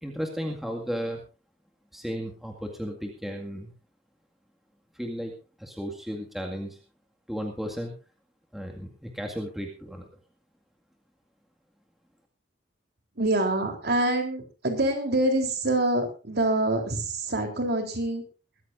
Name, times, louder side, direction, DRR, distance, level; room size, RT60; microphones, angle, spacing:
voice 1, 0.0-1.2 1.9-3.7 4.9-6.8 7.3-7.9 8.5-10.1, equal, ahead, 1 dB, 2.1 m, -34 dB
voice 2, 13.2-18.2, right 1 dB, 60° right, 4 dB, 3.7 m, -26 dB
22.5 x 14.5 x 2.6 m, 0.32 s
head